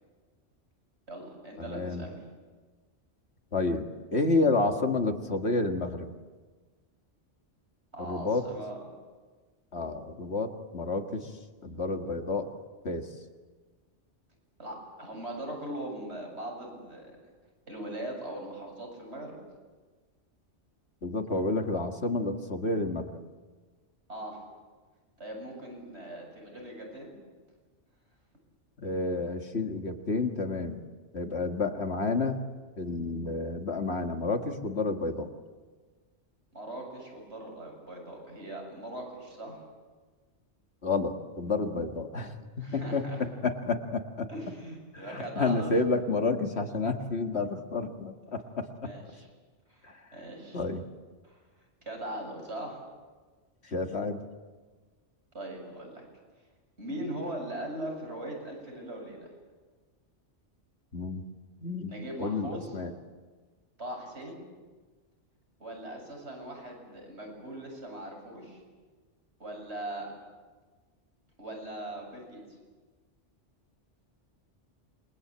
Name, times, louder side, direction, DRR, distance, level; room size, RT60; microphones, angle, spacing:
voice 1, 1.1-2.2 7.9-8.8 14.6-17.1 17.7-19.4 24.1-24.4 25.2-27.1 36.5-39.6 42.6-43.2 44.3-45.7 48.8-49.3 49.7-50.6 51.2-51.4 51.8-52.8 55.3-56.0 56.8-59.3 61.9-62.7 63.8-64.4 65.6-68.6 69.4-70.1 71.4-72.4, right 1 dB, 65° right, 1 dB, 7.9 m, -40 dB
voice 2, 1.6-2.1 3.5-6.1 8.0-8.5 9.7-11.3 11.6-12.5 12.8-13.1 21.0-23.1 28.8-30.8 31.1-32.4 32.8-35.3 40.8-44.3 44.9-48.9 49.9-50.0 50.5-50.8 53.6-54.2 60.9-61.2 61.6-61.9 62.2-62.9, left 3 dB, 65° left, 5 dB, 2.2 m, -30 dB
28.0 x 23.5 x 8.8 m, 1.4 s
omnidirectional pair, 1.2 m